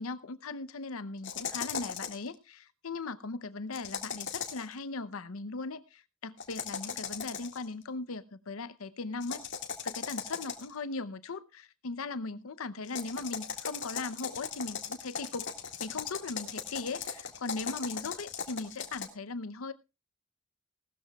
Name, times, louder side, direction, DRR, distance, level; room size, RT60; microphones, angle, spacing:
voice 1, 0.0-9.5 9.8-15.5 15.8-19.7, left 3 dB, 85° left, 0.7 m, -38 dB
sound 1, 1.2-2.3 3.7-4.7 6.4-7.6 9.2-10.8 12.8-19.1, left 6 dB, 60° left, 1.9 m, -38 dB
18.0 x 13.5 x 2.3 m
head